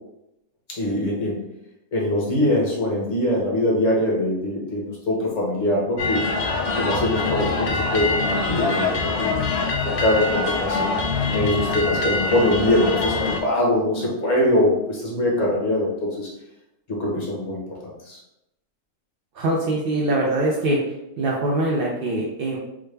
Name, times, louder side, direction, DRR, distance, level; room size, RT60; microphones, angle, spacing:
voice 1, 0.8-1.4 1.9-6.2 6.7-9.4 9.8-10.9 11.3-16.3 16.9-18.2, left 1 dB, 35° left, -4 dB, 0.8 m, -23 dB
sound 1, 6.0-13.4, left 3 dB, 65° left, 0.7 m, -24 dB
voice 2, 19.3-20.8 21.2-22.6, right 1 dB, 75° right, -3 dB, 0.5 m, -23 dB
3.6 x 2.2 x 3.2 m, 0.87 s
omnidirectional pair, 1.6 m